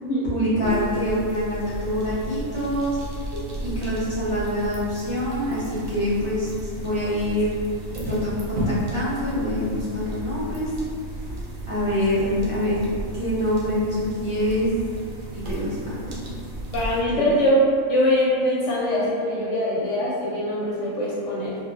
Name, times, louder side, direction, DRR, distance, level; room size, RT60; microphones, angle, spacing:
voice 1, 0.2-3.0 3.7-6.5 6.8-7.5 8.1-10.7 11.7-12.8 13.1-14.7 15.3-16.2 17.1-17.3, left 1 dB, 30° right, -11 dB, 0.8 m, -25 dB
sound 1, 0.6-17.0, right 1 dB, 60° right, 0.5 m, -34 dB
voice 2, 16.7-17.6 17.9-21.6, equal, 70° left, -7 dB, 0.8 m, -23 dB
3.0 x 2.4 x 2.4 m, 2.2 s
omnidirectional pair, 1.4 m